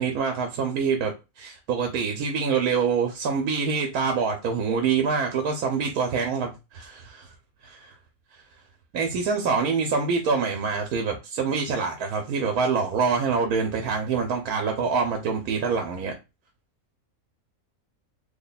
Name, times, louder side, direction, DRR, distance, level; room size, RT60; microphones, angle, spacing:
voice 1, 0.0-7.3 7.6-7.9 8.9-16.1, right 5 dB, 85° right, 4 dB, 1.1 m, -25 dB
3.3 x 2.2 x 3.9 m, 0.27 s
omnidirectional pair, 1.5 m